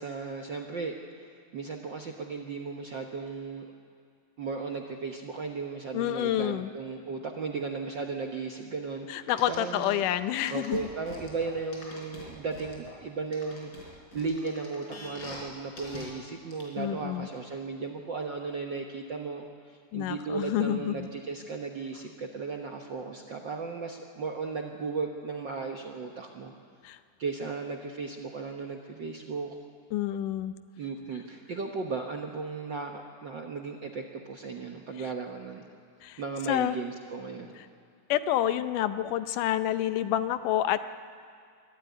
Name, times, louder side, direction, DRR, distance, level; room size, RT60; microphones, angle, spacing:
voice 1, 0.0-3.7 4.4-10.2 10.5-26.5 27.2-29.6 30.8-35.7 36.2-37.6, right 4 dB, 60° right, 2 dB, 1.2 m, -36 dB
voice 2, 5.9-6.7 9.1-10.9 16.8-17.3 19.9-21.0 26.9-27.0 29.9-30.5 36.0-36.2 36.5-36.8 38.1-40.8, left 12 dB, 85° left, 11 dB, 2.4 m, -28 dB
sound 1, 9.3-9.9 10.5-12.9 13.3-15.4 15.8-16.1 16.5-16.6, left 2 dB, 40° left, 5.2 m, -44 dB
24.0 x 13.5 x 9.3 m, 2.3 s
omnidirectional pair, 3.6 m